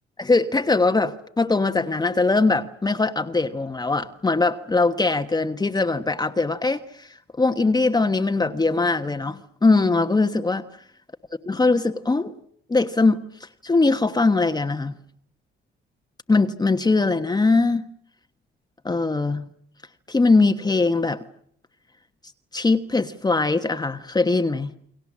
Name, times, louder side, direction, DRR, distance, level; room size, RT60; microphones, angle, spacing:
voice 1, 0.2-10.6 11.5-12.3 12.7-14.9 16.3-17.8 18.8-19.5 20.1-21.2 22.5-24.7, left 3 dB, 20° left, 1.2 m, -21 dB
30.0 x 22.5 x 7.4 m
cardioid pair, 90°, 20 cm